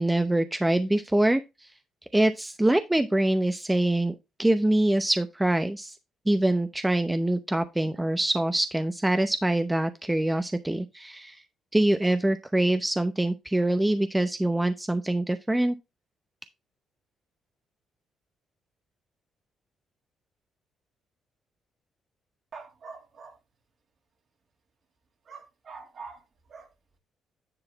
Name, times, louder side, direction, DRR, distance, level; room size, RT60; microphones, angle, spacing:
voice 1, 0.0-1.7 2.1-5.9 6.3-11.4 11.7-15.7, right 1 dB, 10° right, 0.7 m, -24 dB
voice 2, 22.5-23.4 25.3-26.2 26.5-26.7, right 4 dB, 55° right, 2.5 m, -44 dB
9.9 x 3.8 x 4.5 m
cardioid pair, 90°, 0 cm